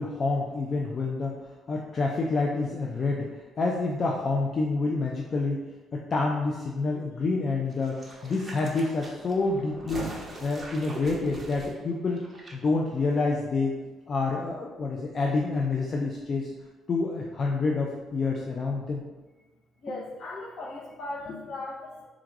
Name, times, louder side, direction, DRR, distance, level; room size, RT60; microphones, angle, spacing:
voice 1, 0.0-1.4 1.7-5.6 5.9-10.1 10.4-12.3 12.5-13.7 14.1-16.5 16.9-19.0 19.9-20.0, left 3 dB, 35° left, -1 dB, 0.4 m, -28 dB
sound 1, 7.7-12.5 12.8-12.9, right 2 dB, 20° right, 0.8 m, -42 dB
voice 2, 19.8-22.1, left 2 dB, 55° left, -2 dB, 1.0 m, -38 dB
3.6 x 2.5 x 4.6 m, 1.2 s
cardioid pair, 150°, 0 cm